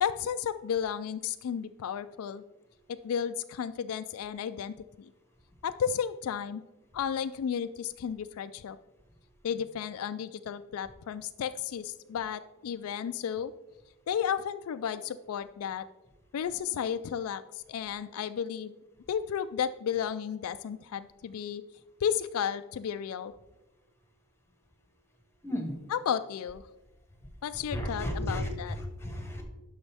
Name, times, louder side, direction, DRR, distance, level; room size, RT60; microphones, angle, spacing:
voice 1, 0.0-2.4 2.9-5.1 5.6-6.6 6.9-8.8 9.4-13.5 14.1-15.9 16.3-18.7 19.1-21.6 22.0-23.3 25.9-26.6 27.4-28.8, left 8 dB, 70° left, 11 dB, 0.3 m, -33 dB
voice 2, 25.4-25.8 27.7-29.4, left 1 dB, 10° left, 4 dB, 1.0 m, -33 dB
10.5 x 6.2 x 3.4 m, 1.0 s
head